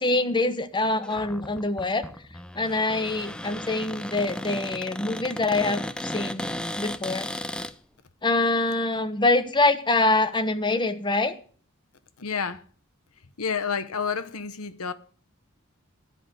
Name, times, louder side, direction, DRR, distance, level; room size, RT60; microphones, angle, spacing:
voice 1, 0.0-2.1 2.5-6.5 6.8-7.3 8.2-11.4, left 2 dB, 20° left, 1.1 m, -25 dB
Cupboard open or close, 1.0-7.7, left 1 dB, 5° left, 0.5 m, -35 dB
voice 2, 12.2-12.6 13.4-14.9, left 6 dB, 90° left, 1.0 m, -29 dB
13.0 x 5.0 x 7.6 m
head